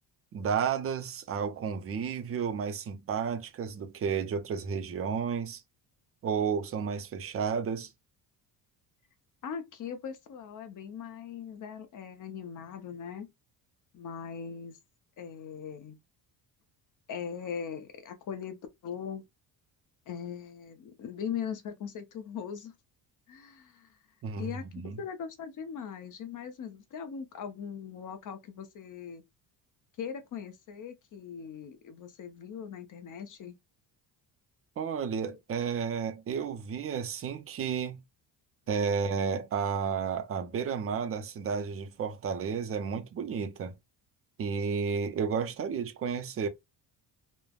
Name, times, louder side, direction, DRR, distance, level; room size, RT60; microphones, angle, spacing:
voice 1, 0.3-5.6 6.2-7.9 24.2-25.0 34.8-38.0 38.7-43.7 44.4-46.5, right 6 dB, 35° right, 0.5 m, -32 dB
voice 2, 9.4-13.3 13.9-14.8 15.2-16.0 17.1-19.2 20.1-22.7 23.3-23.9 24.4-24.7 25.0-29.2 30.0-33.6, left 7 dB, 45° left, 0.7 m, -40 dB
3.2 x 2.1 x 2.3 m
cardioid pair, 130°, 44 cm